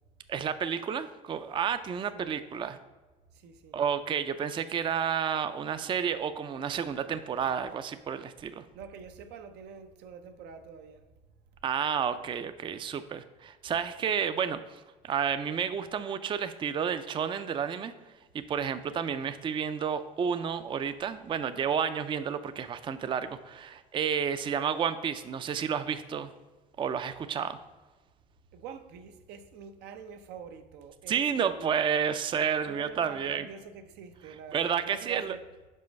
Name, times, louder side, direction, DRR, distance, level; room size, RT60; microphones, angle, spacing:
voice 1, 0.3-2.8 3.7-8.6 11.6-17.9 18.3-26.3 26.8-27.6 31.1-33.5 34.5-35.3, right 7 dB, 30° right, 0.4 m, -31 dB
voice 2, 3.3-3.8 8.7-11.1 28.5-31.8 32.6-35.4, right 6 dB, 85° right, 0.7 m, -45 dB
5.5 x 5.1 x 5.1 m
cardioid pair, 110°, 17 cm